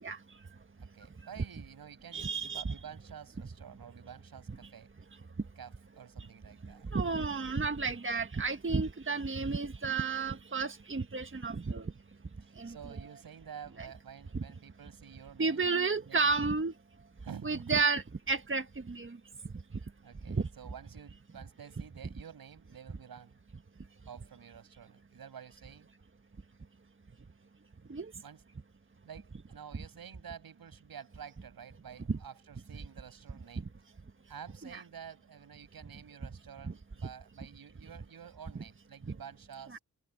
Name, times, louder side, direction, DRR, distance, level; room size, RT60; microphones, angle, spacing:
voice 1, 0.5-4.9 5.6-6.9 12.4-15.7 16.1-16.6 17.2-17.8 20.0-23.5 24.0-25.9 28.2-28.4 29.0-33.7 34.3-39.8, right 8 dB, 80° right, 6.5 m, -50 dB
voice 2, 2.1-2.7 6.9-11.9 12.6-12.7 13.8-13.9 15.4-16.7 17.4-19.2 20.3-20.5 27.9-28.1 29.7-29.8 32.1-32.2 34.7-34.8 36.6-36.7 39.7-39.8, right 4 dB, 35° right, 1.6 m, -32 dB
open air
supercardioid pair, 40°, 35 cm